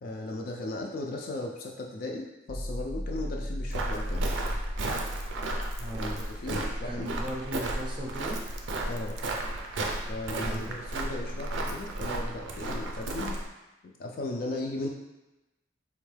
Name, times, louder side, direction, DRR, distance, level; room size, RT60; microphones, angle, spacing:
voice 1, 0.0-4.2 5.9-7.3 8.9-9.2 10.1-13.4 13.8-14.9, left 2 dB, 50° left, 0 dB, 0.3 m, -36 dB
sound 1, 2.5-7.5, equal, 75° left, 0.7 m, -37 dB
Walk footsteps, 3.7-13.5, right 2 dB, 90° right, 0.4 m, -33 dB
voice 2, 5.8-6.2 6.5-8.4 10.4-10.7, equal, 25° right, -2 dB, 0.5 m, -37 dB
3.7 x 2.2 x 3.2 m, 1.0 s
head